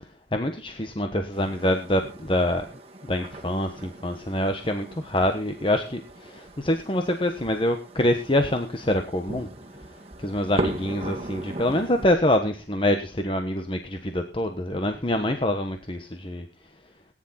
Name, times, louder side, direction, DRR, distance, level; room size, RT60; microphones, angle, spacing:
voice 1, 0.3-2.7 3.0-9.5 10.2-16.5, left 1 dB, 30° left, 6 dB, 1.2 m, -25 dB
sound 1, 1.3-12.1, right 1 dB, 30° right, 2.1 m, -38 dB
18.0 x 10.5 x 4.3 m, 0.32 s
head